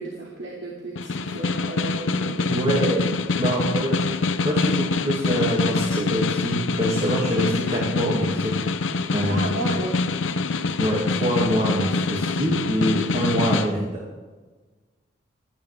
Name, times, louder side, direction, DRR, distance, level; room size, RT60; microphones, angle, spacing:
voice 1, 0.0-2.5 9.3-10.0, right 1 dB, 70° right, -3 dB, 2.6 m, -33 dB
Snare drum, 1.0-13.7, left 3 dB, 85° left, 0.7 m, -25 dB
voice 2, 2.5-3.0 3.3-8.7 9.1-9.5 10.8-14.0, equal, 30° right, -4 dB, 2.5 m, -25 dB
17.5 x 13.5 x 3.6 m, 1.3 s
head